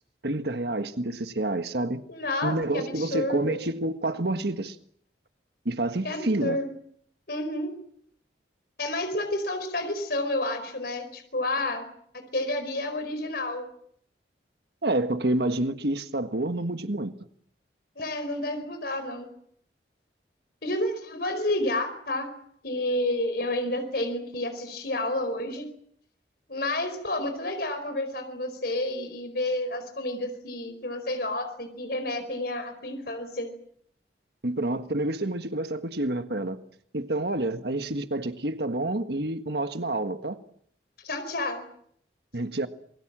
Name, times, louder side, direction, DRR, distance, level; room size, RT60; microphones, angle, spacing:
voice 1, 0.2-2.0 2.4-4.8 5.6-6.6 14.8-17.1 34.4-36.6 36.9-40.4 42.3-42.7, right 2 dB, 65° right, 1.6 m, -28 dB
voice 2, 2.1-3.6 6.0-6.7 7.3-7.7 8.8-11.9 12.3-13.6 18.0-19.3 20.6-22.3 22.6-25.7 26.5-33.5 41.0-41.7, left 1 dB, 60° left, 4.7 m, -30 dB
27.5 x 22.0 x 7.6 m
head